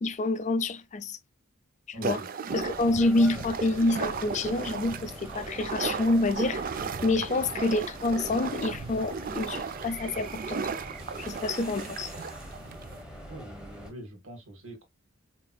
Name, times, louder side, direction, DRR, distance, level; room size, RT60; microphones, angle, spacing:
voice 1, 0.0-1.2 1.9-2.2 2.5-6.7 7.0-10.7 11.2-12.1, left 2 dB, 35° left, 0.4 m, -27 dB
voice 2, 1.9-2.3 7.1-7.3 13.3-14.8, right 1 dB, 75° right, 1.6 m, -44 dB
sound 1, 2.0-13.0, right 5 dB, 40° right, 0.4 m, -36 dB
sound 2, 2.5-13.9, equal, 5° right, 1.1 m, -45 dB
sound 3, 3.6-11.5, right 1 dB, 25° right, 0.8 m, -49 dB
5.0 x 2.9 x 2.2 m
head